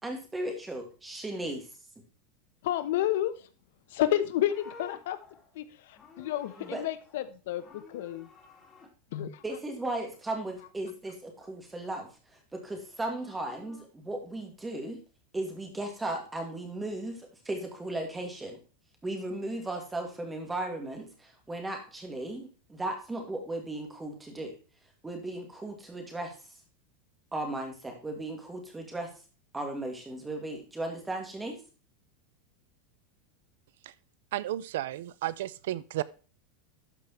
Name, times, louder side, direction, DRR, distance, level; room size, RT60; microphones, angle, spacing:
voice 1, 0.0-1.7 6.6-6.8 9.4-12.1 12.5-15.0 15.3-18.6 19.0-24.6 25.0-26.3 27.3-29.1 29.5-31.6, right 2 dB, 10° right, 3 dB, 2.1 m, -36 dB
voice 2, 2.6-3.5 3.9-5.2 5.5-8.3 9.1-9.4, left 12 dB, 65° left, 12 dB, 1.0 m, -30 dB
Livestock farm animals working animals, 3.9-7.3 7.6-8.9 12.7-13.8, left 3 dB, 20° left, 2.4 m, -53 dB
voice 3, 34.3-36.0, right 14 dB, 70° right, 19 dB, 0.5 m, -33 dB
12.5 x 5.2 x 4.4 m, 0.36 s
supercardioid pair, 165°, 0 cm